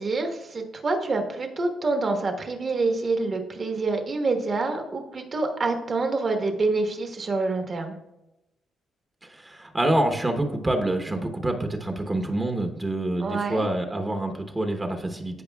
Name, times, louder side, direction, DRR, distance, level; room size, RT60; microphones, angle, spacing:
voice 1, 0.0-7.9 13.2-13.7, right 3 dB, 40° right, 4 dB, 1.3 m, -27 dB
voice 2, 9.3-15.4, right 1 dB, 20° right, 5 dB, 0.9 m, -26 dB
15.0 x 5.0 x 2.3 m, 0.92 s
cardioid pair, 90°, 0 cm